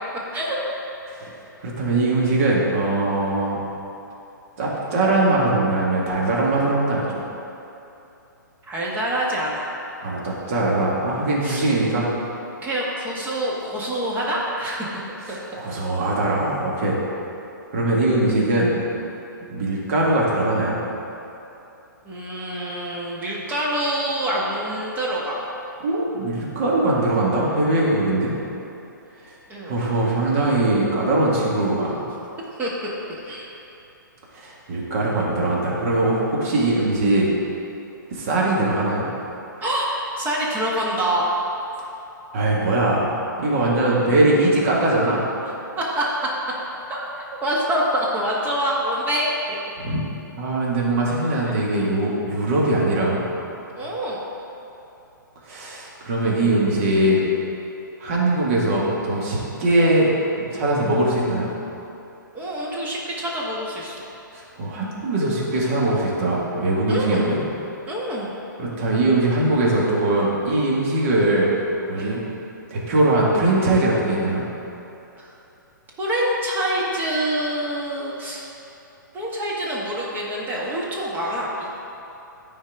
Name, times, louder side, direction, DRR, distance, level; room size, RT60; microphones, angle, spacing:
voice 1, 1.6-3.6 4.6-7.2 10.0-12.1 15.6-17.0 17.7-18.7 19.5-20.8 25.8-28.3 29.7-32.0 34.3-37.3 38.1-39.1 42.3-43.1 43.4-45.3 49.8-50.1 50.4-53.2 55.5-57.2 58.0-60.1 60.4-61.5 64.3-67.4 68.6-71.5 71.9-72.2 72.7-74.4, right 2 dB, 45° right, -5 dB, 1.9 m, -21 dB
voice 2, 8.7-9.7 11.4-11.6 12.6-15.0 15.3-15.4 22.0-25.4 29.5-29.8 32.6-32.9 33.2-33.5 39.6-41.4 45.8-46.1 46.9-47.0 47.4-49.3 53.8-54.2 62.3-64.0 66.9-67.3 67.9-68.3 71.9-72.3 76.0-78.4 79.1-81.7, right 1 dB, 15° right, -5 dB, 1.4 m, -26 dB
13.5 x 4.6 x 3.6 m, 2.9 s
figure-of-eight pair, 125°, 11 cm